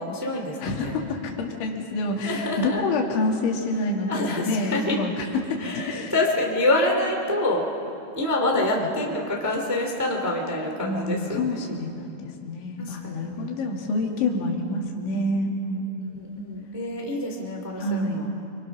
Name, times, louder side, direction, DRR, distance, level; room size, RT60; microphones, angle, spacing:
voice 1, 0.0-1.0 2.2-2.8 4.1-5.0 5.6-7.6 8.1-11.6 12.8-13.5 16.0-18.3, left 1 dB, 5° right, 0 dB, 1.3 m, -27 dB
voice 2, 0.6-6.1 8.5-8.9 10.8-16.1 17.8-18.2, left 2 dB, 90° left, 1 dB, 4.4 m, -27 dB
28.0 x 24.5 x 6.1 m, 2.8 s
omnidirectional pair, 5.2 m